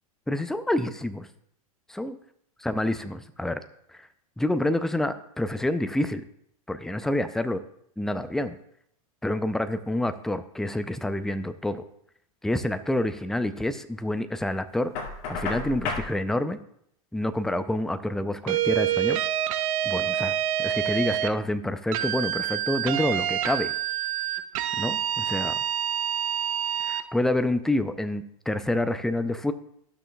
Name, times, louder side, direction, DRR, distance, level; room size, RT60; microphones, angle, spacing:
voice 1, 0.3-1.3 2.0-2.2 2.6-3.6 3.9-4.1 4.4-6.2 6.7-7.6 8.0-8.6 9.2-11.8 12.4-14.9 15.3-16.6 17.1-19.2 19.8-20.3 20.6-23.7 24.8-25.6 26.8-29.5, left 1 dB, ahead, 11 dB, 0.4 m, -28 dB
Knock, 14.9-16.1, left 4 dB, 55° left, 2.0 m, -31 dB
sound 1, 18.5-21.3 21.9-27.1, right 11 dB, 65° right, 0.7 m, -27 dB
14.5 x 6.2 x 2.3 m, 0.72 s
hypercardioid pair, 115°, 19 cm